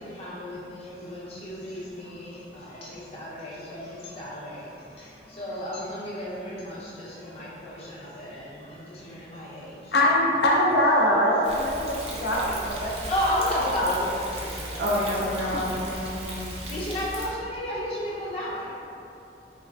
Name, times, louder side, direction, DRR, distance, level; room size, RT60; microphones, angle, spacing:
voice 1, 0.0-9.9 11.8-12.3 12.8-15.7 16.5-18.7, equal, 35° left, -7 dB, 0.8 m, -33 dB
voice 2, 9.9-12.9, left 1 dB, 65° left, -4 dB, 0.7 m, -22 dB
Thunder, 11.4-17.3, right 1 dB, 35° right, 0.5 m, -36 dB
voice 3, 14.8-16.3, left 1 dB, 75° right, -5 dB, 0.8 m, -28 dB
4.2 x 3.2 x 2.4 m, 2.8 s
head